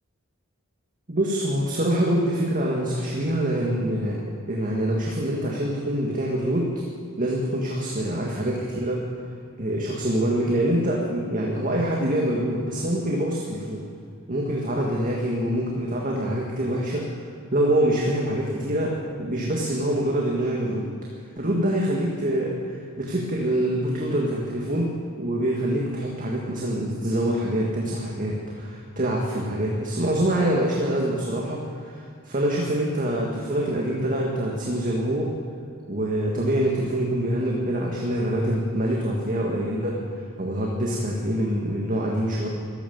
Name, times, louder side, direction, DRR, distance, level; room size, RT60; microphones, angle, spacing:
voice 1, 1.1-4.2 4.5-6.7 7.2-9.0 9.6-13.8 14.3-20.9 21.4-22.6 23.0-24.9 25.2-35.3 35.9-40.0 40.4-42.5, right 1 dB, 40° right, -2 dB, 1.9 m, -25 dB
15.5 x 13.0 x 7.2 m, 2.2 s
head